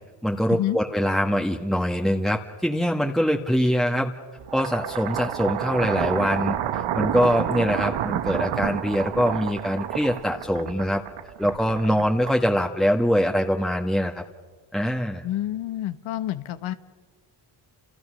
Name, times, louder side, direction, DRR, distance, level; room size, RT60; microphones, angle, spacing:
voice 1, 0.2-4.1 4.5-11.0 11.4-14.2 14.7-15.2, equal, ahead, 1 dB, 1.9 m, -23 dB
sound 1, 4.4-12.7, right 11 dB, 85° right, 1.3 m, -29 dB
voice 2, 15.2-16.7, left 13 dB, 85° left, 11 dB, 1.5 m, -28 dB
29.5 x 27.5 x 6.7 m, 1.5 s
cardioid pair, 75°, 47 cm